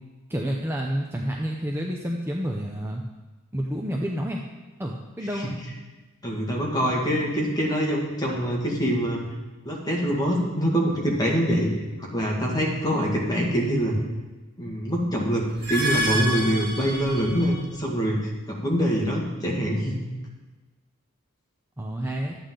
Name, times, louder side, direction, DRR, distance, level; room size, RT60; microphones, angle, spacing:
voice 1, 0.3-3.0 3.5-4.4 4.8-5.5 21.8-22.4, equal, 10° right, 0 dB, 0.6 m, -29 dB
voice 2, 6.2-9.2 9.6-11.7 12.0-14.0 14.6-20.0, equal, 20° left, -2 dB, 1.9 m, -25 dB
sound 1, 15.5-17.7, right 1 dB, 45° right, 2.6 m, -28 dB
13.0 x 8.6 x 3.8 m, 1.2 s
head